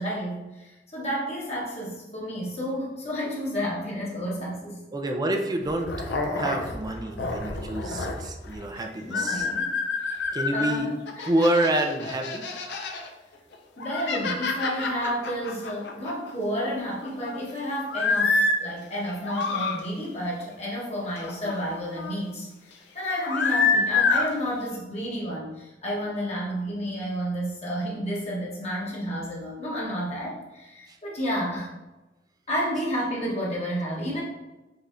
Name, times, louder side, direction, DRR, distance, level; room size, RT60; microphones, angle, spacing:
voice 1, 0.0-4.8 8.7-8.8 9.1-9.7 10.0-10.2 10.5-11.3 13.8-22.5 22.9-31.7 32.5-34.2, equal, 40° left, -5 dB, 1.1 m, -31 dB
voice 2, 4.9-5.9 6.3-9.5 10.3-10.9 11.2-12.5, right 1 dB, 20° right, 3 dB, 0.4 m, -27 dB
sound 1, 5.6-8.6 9.1-10.7 11.1-13.1 13.5-16.3 16.6-17.4 17.9-18.6 19.1-19.8 21.2-22.1 23.1-24.3, left 4 dB, 70° left, 0.6 m, -27 dB
5.4 x 3.1 x 2.6 m, 1.1 s
head